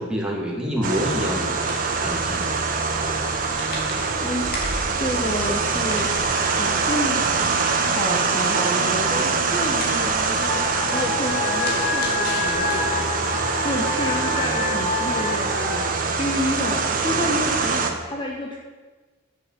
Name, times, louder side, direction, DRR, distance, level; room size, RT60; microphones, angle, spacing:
voice 1, 0.0-1.6 1.9-2.6, equal, 5° right, -3 dB, 2.3 m, -27 dB
sound 1, 0.8-17.9, right 4 dB, 40° right, 1.2 m, -24 dB
sound 2, 1.4-13.2, left 1 dB, 45° left, 2.7 m, -38 dB
voice 2, 4.9-6.1 6.4-7.2 7.7-13.1 13.6-18.6, left 1 dB, 25° left, -1 dB, 1.1 m, -29 dB
sound 3, 10.4-15.8, left 3 dB, 65° left, 4.5 m, -28 dB
10.5 x 7.8 x 7.4 m, 1.4 s
head